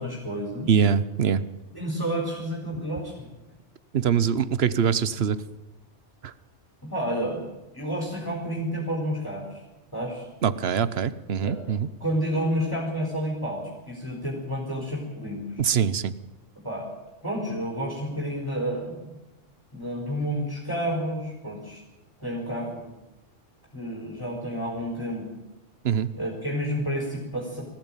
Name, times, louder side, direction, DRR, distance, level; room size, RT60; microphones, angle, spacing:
voice 1, 0.0-0.7 1.7-3.3 6.8-7.5 7.7-9.6 9.9-10.3 11.4-11.6 12.0-15.6 16.6-16.9 17.2-19.1 19.7-21.8 22.2-22.9 23.7-25.3 26.1-27.6, equal, 15° left, -1 dB, 4.6 m, -30 dB
voice 2, 0.7-1.4 3.9-5.4 6.2-6.3 10.4-11.9 15.6-16.1 25.8-26.1, right 7 dB, 60° right, 16 dB, 1.1 m, -23 dB
20.5 x 15.0 x 9.0 m, 0.99 s
omnidirectional pair, 1.3 m